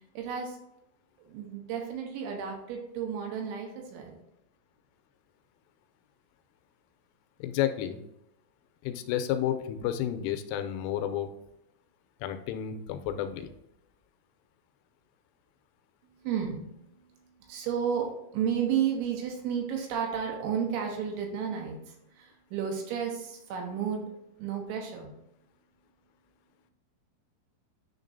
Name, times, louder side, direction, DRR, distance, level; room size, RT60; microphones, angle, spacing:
voice 1, 0.1-0.6 1.3-4.2 16.0-24.0 24.4-25.1, right 7 dB, 80° right, 1 dB, 3.1 m, -32 dB
voice 2, 7.4-8.0 8.8-11.3 12.2-13.5, left 11 dB, 85° left, 8 dB, 3.1 m, -31 dB
10.0 x 3.6 x 2.6 m, 0.82 s
omnidirectional pair, 5.6 m